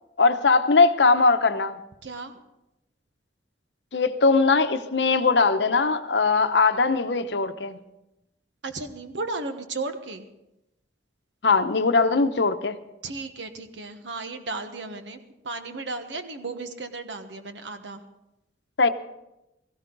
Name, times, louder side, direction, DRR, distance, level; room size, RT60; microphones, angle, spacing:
voice 1, 0.2-1.8 3.9-7.8 11.4-12.8 18.8-18.9, left 4 dB, 70° left, 9 dB, 0.8 m, -20 dB
voice 2, 2.0-2.3 8.6-10.3 13.0-18.0, right 3 dB, 85° right, 8 dB, 1.3 m, -34 dB
17.5 x 15.0 x 4.0 m, 0.91 s
head